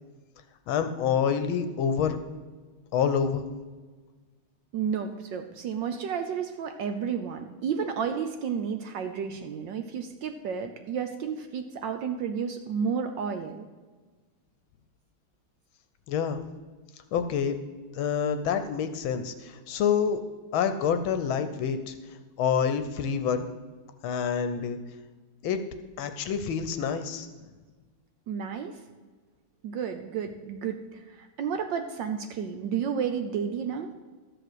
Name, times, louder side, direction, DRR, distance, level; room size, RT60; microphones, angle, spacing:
voice 1, 0.7-2.2 2.9-3.5 16.1-16.4 17.1-17.6 17.9-20.2 20.5-21.9 22.4-23.5 24.0-24.8 25.4-25.6 26.0-27.3, left 7 dB, 70° left, 9 dB, 1.5 m, -27 dB
voice 2, 4.7-13.6 28.3-28.8 29.6-33.9, right 7 dB, 70° right, 7 dB, 1.2 m, -31 dB
12.5 x 5.0 x 7.9 m, 1.4 s
omnidirectional pair, 2.4 m